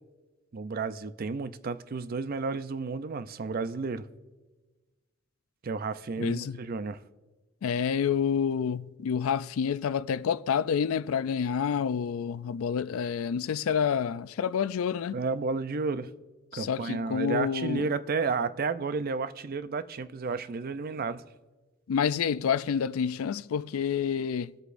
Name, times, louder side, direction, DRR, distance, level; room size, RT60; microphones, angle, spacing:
voice 1, 0.5-4.1 5.6-7.0 15.1-16.1 16.5-21.2, right 4 dB, 45° right, 0.4 m, -32 dB
voice 2, 6.2-6.6 7.6-15.2 16.5-17.9 21.9-24.5, left 7 dB, 80° left, 0.4 m, -28 dB
23.5 x 8.1 x 2.5 m
head